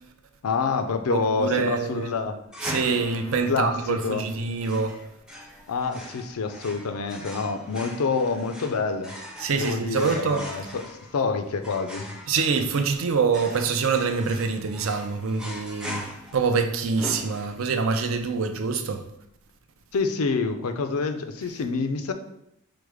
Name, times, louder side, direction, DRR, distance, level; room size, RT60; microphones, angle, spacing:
voice 1, 0.4-2.3 3.3-4.3 5.7-9.2 9.6-12.2 19.9-22.1, left 4 dB, 85° left, 0.5 m, -27 dB
voice 2, 1.1-2.1 2.6-5.0 9.4-10.4 12.3-16.1 16.3-19.0, right 5 dB, 70° right, 0.5 m, -25 dB
sound 1, 2.5-17.9, equal, 5° right, 0.5 m, -40 dB
4.7 x 2.1 x 4.7 m
head